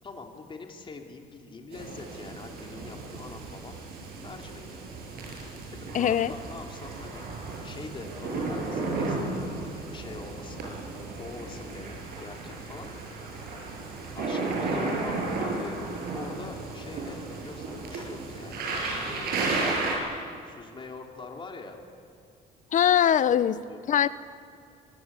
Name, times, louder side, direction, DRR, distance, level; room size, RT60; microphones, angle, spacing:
voice 1, 0.0-3.8 4.2-4.8 5.8-7.3 7.6-10.7 11.2-12.9 14.1-15.8 16.1-18.7 19.0-19.9 20.4-21.8 23.7-23.8, left 4 dB, 30° left, 2 dB, 3.5 m, -43 dB
sound 1, 1.7-20.0, right 3 dB, 65° right, 7.6 m, -34 dB
voice 2, 5.9-6.3 22.7-23.6 23.9-24.1, left 10 dB, 50° left, 15 dB, 0.9 m, -21 dB
24.5 x 23.0 x 8.5 m, 2.4 s
cardioid pair, 110°, 17 cm